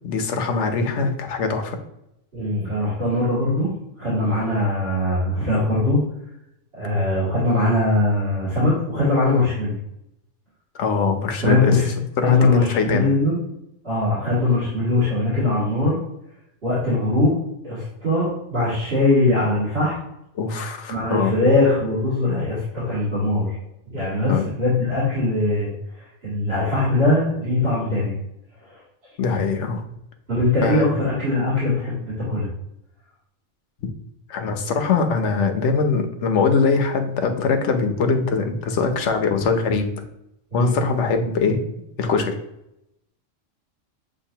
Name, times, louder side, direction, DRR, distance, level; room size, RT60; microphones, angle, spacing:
voice 1, 0.0-1.8 10.8-11.8 12.2-13.1 20.4-21.3 24.3-24.5 29.2-29.8 30.6-31.0 34.3-39.9 40.5-41.6 42.0-42.4, left 4 dB, 70° left, 5 dB, 0.9 m, -22 dB
voice 2, 2.3-3.7 4.0-6.0 6.7-9.8 11.4-11.9 12.2-13.4 13.8-16.0 16.6-17.4 17.6-19.9 20.9-23.6 23.9-25.7 26.0-28.1 28.7-28.8 30.3-32.5 40.5-40.8, left 2 dB, 50° right, -13 dB, 2.3 m, -21 dB
7.3 x 2.6 x 2.8 m, 0.83 s
omnidirectional pair, 1.3 m